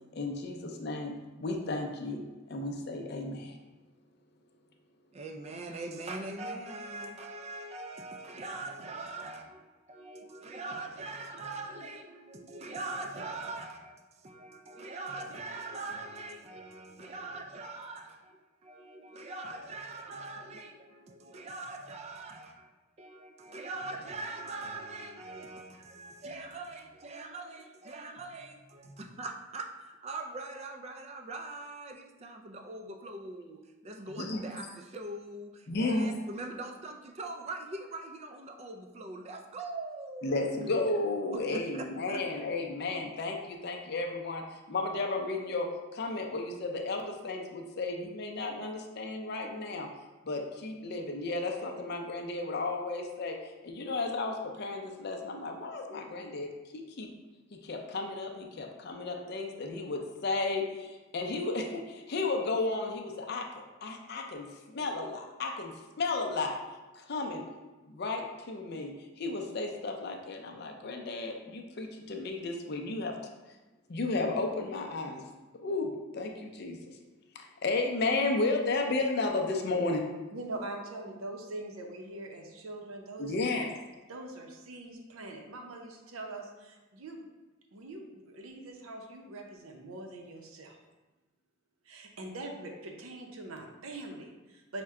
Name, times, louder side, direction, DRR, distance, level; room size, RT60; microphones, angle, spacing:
voice 1, 0.1-2.2 2.5-3.6 34.1-34.4 35.7-36.1 40.2-49.9 50.2-53.4 53.6-57.1 57.6-66.6 67.0-67.4 67.9-73.1 73.9-75.2 75.6-77.0 77.3-80.0 83.2-83.7, left 3 dB, 50° left, 2 dB, 0.5 m, -33 dB
voice 2, 5.1-14.0 14.2-18.4 18.6-22.7 23.0-40.9 41.3-42.3, right 2 dB, 30° right, 5 dB, 0.3 m, -42 dB
voice 3, 80.3-83.7 84.1-87.3 87.7-90.8 91.8-94.8, right 2 dB, 85° right, 2 dB, 0.7 m, -43 dB
5.6 x 2.1 x 3.6 m, 1.2 s
head